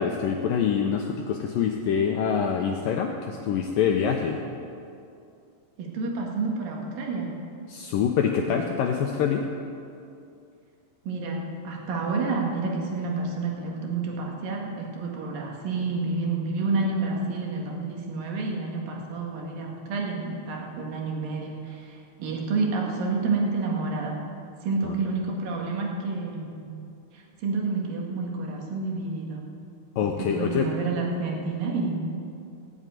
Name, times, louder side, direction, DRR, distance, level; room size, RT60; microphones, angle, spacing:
voice 1, 0.0-4.4 7.7-9.4 24.8-25.0 30.0-30.7, left 7 dB, 85° left, 2 dB, 1.9 m, -25 dB
voice 2, 5.8-7.3 8.5-8.6 11.0-24.2 24.6-26.7 27.1-29.4 30.2-32.2, right 3 dB, 60° right, 0 dB, 3.3 m, -29 dB
18.5 x 8.0 x 9.1 m, 2.5 s
omnidirectional pair, 5.1 m